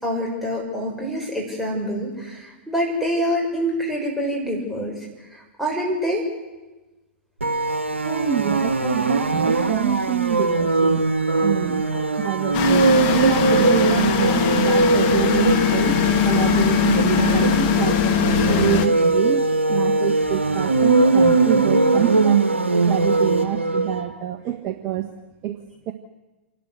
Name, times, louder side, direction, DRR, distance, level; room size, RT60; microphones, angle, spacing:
voice 1, 0.0-4.9 5.3-6.2, equal, ahead, -3 dB, 6.4 m, -26 dB
sound 1, 7.4-24.0, right 3 dB, 85° right, 1.4 m, -20 dB
voice 2, 8.0-11.1 11.4-11.8 12.2-18.2 18.4-22.4 22.9-25.1 25.4-25.6 25.9-26.0, right 11 dB, 35° right, 6 dB, 1.3 m, -26 dB
sound 2, 12.5-18.9, left 9 dB, 45° left, 1.6 m, -21 dB
27.5 x 12.0 x 8.0 m, 1.1 s
figure-of-eight pair, 105°, 6 cm